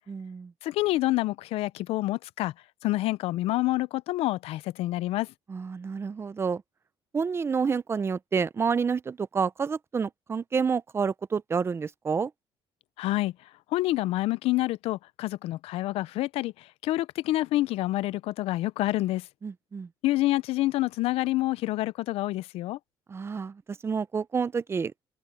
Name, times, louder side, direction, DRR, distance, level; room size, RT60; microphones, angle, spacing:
voice 1, 0.1-0.5 5.5-6.6 7.1-12.3 19.4-19.9 23.1-25.0, right 5 dB, 25° right, 0.6 m, -29 dB
voice 2, 0.6-2.5 2.8-5.3 13.0-13.3 13.7-19.3 20.0-22.8, left 17 dB, 75° left, 0.5 m, -27 dB
cardioid pair, 120°, 10 cm